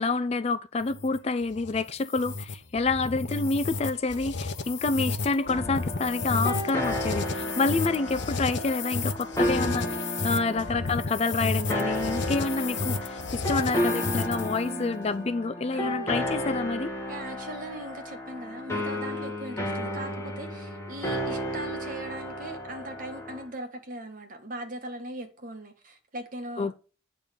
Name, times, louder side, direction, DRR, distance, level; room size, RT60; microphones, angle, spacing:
voice 1, 0.0-16.9 26.6-26.7, left 3 dB, 30° left, 0.4 m, -28 dB
sound 1, 0.8-14.7, left 3 dB, 65° left, 0.9 m, -32 dB
sound 2, 5.5-23.4, equal, 15° left, 1.6 m, -33 dB
voice 2, 14.6-15.1 15.7-16.2 17.1-26.7, right 1 dB, 45° right, 1.6 m, -40 dB
8.9 x 3.8 x 6.9 m
head